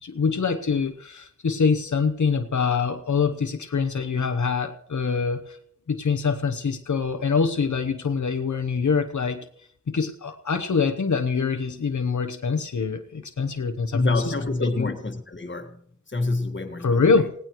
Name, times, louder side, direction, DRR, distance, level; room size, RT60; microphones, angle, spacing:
voice 1, 0.0-5.6 5.9-9.5 9.9-14.3 14.6-14.9 16.8-17.3, left 5 dB, 85° left, 1.0 m, -24 dB
voice 2, 13.9-15.8 16.1-17.0, left 2 dB, 40° left, 1.7 m, -26 dB
19.5 x 17.0 x 3.1 m
wide cardioid pair, 70°, 29 cm